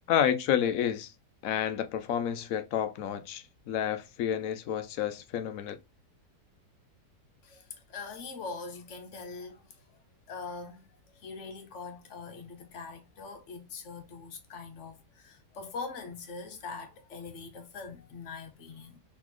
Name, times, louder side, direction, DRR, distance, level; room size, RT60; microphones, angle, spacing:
voice 1, 0.1-1.1 1.4-5.8, left 9 dB, 70° left, 0.9 m, -30 dB
voice 2, 7.4-9.6 10.3-10.9 11.1-19.0, left 4 dB, 50° left, 1.2 m, -42 dB
4.0 x 4.0 x 3.0 m
omnidirectional pair, 1.8 m